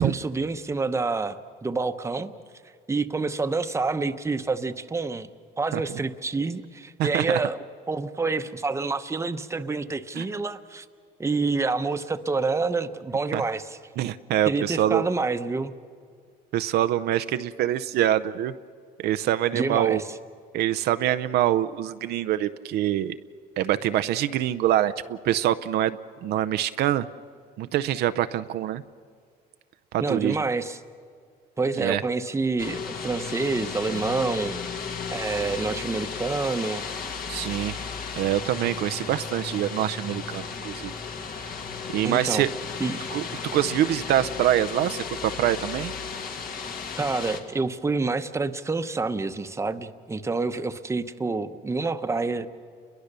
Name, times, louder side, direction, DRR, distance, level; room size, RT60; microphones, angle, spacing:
voice 1, 0.0-2.3 2.9-5.3 5.6-10.9 11.2-13.8 14.5-15.8 19.5-20.0 30.0-30.8 31.6-34.6 35.1-36.8 42.0-42.4 42.8-43.0 47.0-52.5, right 3 dB, 15° right, 9 dB, 0.9 m, -28 dB
voice 2, 7.0-7.4 10.1-10.3 13.3-13.4 14.0-15.1 16.5-18.5 19.0-20.0 20.5-23.2 23.6-27.1 27.6-28.8 29.9-30.4 31.8-32.0 37.3-37.8 38.2-40.9 41.4-41.5 41.9-42.5 43.1-45.9, right 12 dB, 70° right, 11 dB, 0.6 m, -25 dB
sound 1, 32.6-47.4, left 5 dB, 60° left, 2.1 m, -34 dB
29.5 x 22.0 x 6.8 m, 2.1 s
cardioid pair, 110°, 17 cm